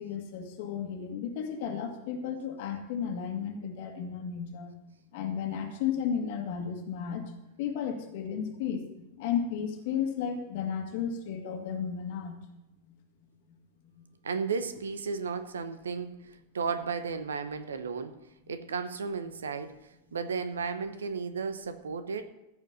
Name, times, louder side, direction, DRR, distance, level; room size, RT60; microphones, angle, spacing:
voice 1, 0.0-4.7 5.1-7.3 7.6-12.5, left 7 dB, 50° left, 4 dB, 2.1 m, -33 dB
voice 2, 14.2-19.8 20.1-22.2, right 5 dB, 70° right, 11 dB, 0.9 m, -34 dB
15.0 x 5.1 x 7.0 m, 0.94 s
figure-of-eight pair, 90°, 0 cm